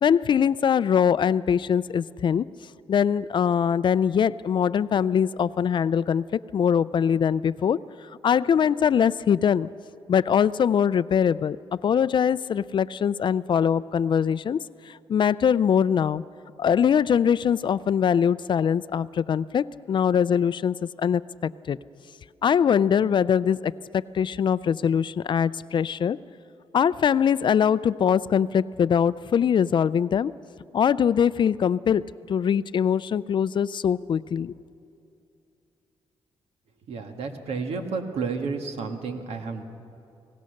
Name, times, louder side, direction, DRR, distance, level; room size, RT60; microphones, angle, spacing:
voice 1, 0.0-2.5 2.9-7.8 8.2-9.7 10.1-11.6 11.8-14.6 14.9-16.2 16.6-21.8 22.4-26.2 26.7-30.3 30.7-32.0 32.3-34.5, left 8 dB, 50° left, 18 dB, 0.4 m, -22 dB
voice 2, 36.9-39.6, right 4 dB, 80° right, 5 dB, 1.7 m, -31 dB
22.0 x 18.0 x 6.5 m, 2.7 s
cardioid pair, 90°, 10 cm